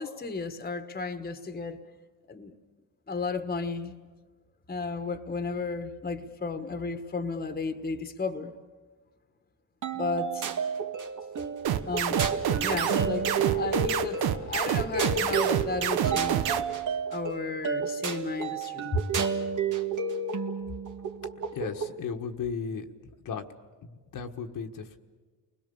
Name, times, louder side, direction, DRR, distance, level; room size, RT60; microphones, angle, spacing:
voice 1, 0.0-1.8 2.3-2.5 3.1-4.0 4.7-8.5 9.9-10.5 11.9-12.3 12.6-16.6 17.1-19.0, left 4 dB, 25° left, 9 dB, 1.5 m, -33 dB
sound 1, 9.8-22.0, right 5 dB, 55° right, 1.8 m, -31 dB
sound 2, 11.6-16.6, right 9 dB, 75° right, 1.3 m, -27 dB
voice 2, 21.5-22.8 23.2-23.4 23.8-25.0, left 6 dB, 60° left, 4 dB, 1.5 m, -35 dB
29.5 x 21.5 x 7.0 m, 1.4 s
cardioid pair, 110°, 38 cm